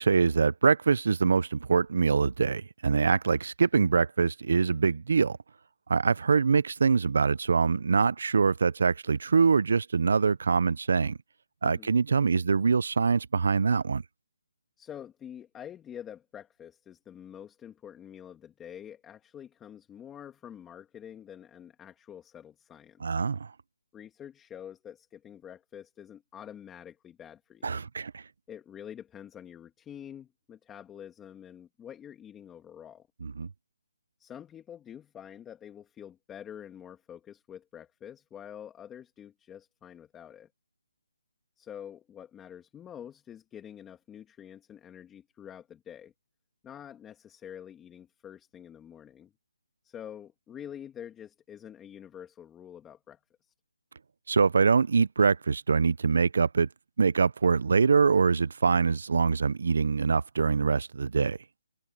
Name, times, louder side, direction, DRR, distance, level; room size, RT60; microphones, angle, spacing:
voice 1, 0.0-5.4 5.9-11.2 11.6-14.0 23.0-23.5 27.6-28.2 33.2-33.5 54.3-56.7 57.0-61.4, right 5 dB, 65° right, 0.6 m, -24 dB
voice 2, 14.8-23.2 23.9-27.8 28.5-33.1 34.2-40.5 41.6-46.1 46.6-49.3 49.8-53.5, left 9 dB, 10° left, 2.2 m, -47 dB
hypercardioid pair, 165°, 0 cm